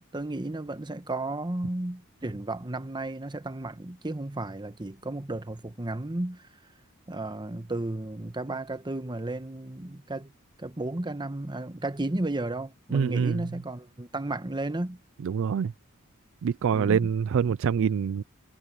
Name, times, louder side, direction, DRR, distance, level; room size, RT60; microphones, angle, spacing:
voice 1, 0.0-6.5 7.1-10.3 10.6-15.0 16.7-17.1, right 2 dB, 20° right, 1.1 m, -33 dB
voice 2, 12.9-13.4 15.2-15.7 16.4-18.2, right 7 dB, 65° right, 0.4 m, -25 dB
head